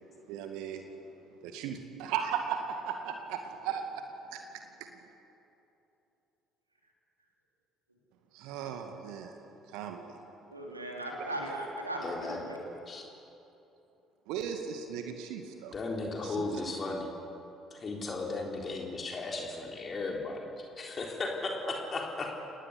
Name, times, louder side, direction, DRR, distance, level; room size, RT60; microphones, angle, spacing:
voice 1, 0.3-0.8 1.4-4.9 8.3-9.4 9.7-10.2 14.3-15.7 16.2-16.6, right 8 dB, 60° right, 5 dB, 2.1 m, -37 dB
voice 2, 10.5-12.6, right 1 dB, 85° right, -1 dB, 3.5 m, -37 dB
voice 3, 12.0-12.5 12.9-13.0 15.7-17.1 17.7-20.4 20.8-22.4, left 3 dB, 35° left, 0 dB, 3.8 m, -35 dB
29.0 x 19.5 x 8.4 m, 2.9 s
figure-of-eight pair, 50°, 0 cm